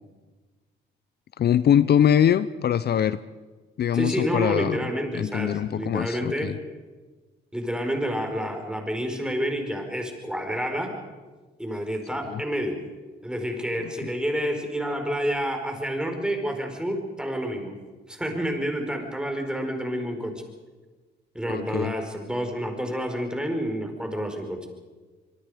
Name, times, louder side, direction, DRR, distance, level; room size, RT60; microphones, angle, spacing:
voice 1, 1.4-3.2 3.8-4.8 5.1-6.5 12.3-12.4 21.5-21.9, left 9 dB, 55° left, 15 dB, 0.6 m, -22 dB
voice 2, 3.9-6.5 7.5-11.0 11.6-12.8 13.2-17.8 18.1-20.4 21.3-24.6, equal, 5° right, 4 dB, 4.8 m, -29 dB
25.5 x 22.5 x 5.1 m, 1.3 s
cardioid pair, 90°, 20 cm